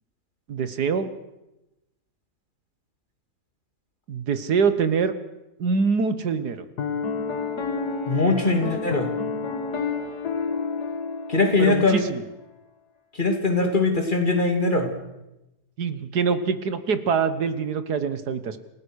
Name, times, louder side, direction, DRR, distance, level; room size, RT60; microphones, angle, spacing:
voice 1, 0.5-1.1 4.1-5.1 5.6-6.6 11.6-12.3 15.8-18.6, right 5 dB, 85° right, 12 dB, 1.9 m, -24 dB
Piano, 6.8-12.1, left 5 dB, 85° left, 2.2 m, -30 dB
voice 2, 8.1-9.1 11.3-12.0 13.1-14.9, left 3 dB, 30° left, 4 dB, 3.0 m, -21 dB
28.5 x 18.0 x 6.4 m, 0.96 s
omnidirectional pair, 1.7 m